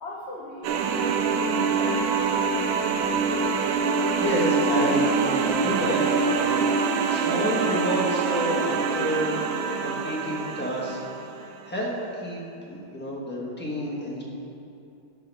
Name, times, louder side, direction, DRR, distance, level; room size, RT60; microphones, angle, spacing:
voice 1, 0.0-2.2, left 1 dB, 50° left, -3 dB, 0.8 m, -40 dB
sound 1, 0.6-11.4, right 5 dB, 85° right, 1.4 m, -25 dB
voice 2, 4.2-6.0 6.3-6.6 7.1-9.4 9.8-11.0 11.3-11.9 12.2-12.4 12.7-14.2, equal, 5° left, -4 dB, 1.1 m, -29 dB
11.5 x 4.8 x 5.4 m, 2.7 s
omnidirectional pair, 2.1 m